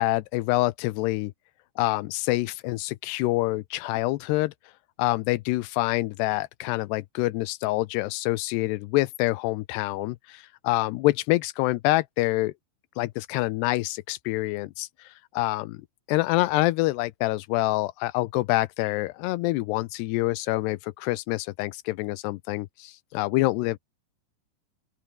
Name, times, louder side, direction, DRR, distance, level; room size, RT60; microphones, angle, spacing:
voice 1, 0.0-1.3 1.8-4.5 5.0-12.5 13.0-14.9 15.3-15.8 16.1-23.8, left 19 dB, 80° left, 2.5 m, -26 dB
open air
omnidirectional pair, 5.4 m